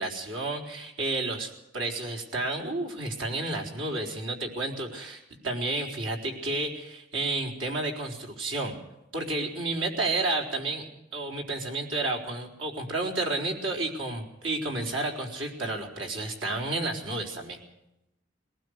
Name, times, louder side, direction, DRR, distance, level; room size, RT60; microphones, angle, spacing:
voice 1, 0.0-8.8 9.1-17.6, right 2 dB, 90° right, 2 dB, 4.3 m, -31 dB
22.0 x 19.5 x 6.6 m, 0.90 s
head